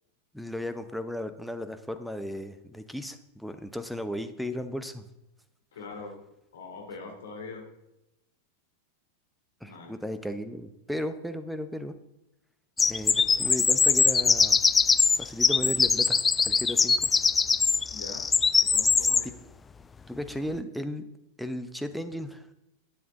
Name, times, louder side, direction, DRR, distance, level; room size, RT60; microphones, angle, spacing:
voice 1, 0.3-5.0 9.6-11.9 12.9-14.6 15.2-17.1 20.1-21.1 21.4-22.5, equal, ahead, 8 dB, 0.9 m, -35 dB
voice 2, 5.7-6.1 6.5-7.6 9.6-9.9 17.9-18.3 18.6-19.3, left 4 dB, 60° left, 1 dB, 2.8 m, -42 dB
sound 1, 12.8-19.3, left 5 dB, 15° left, 0.3 m, -22 dB
12.0 x 9.5 x 3.9 m, 0.90 s
figure-of-eight pair, 90°, 0 cm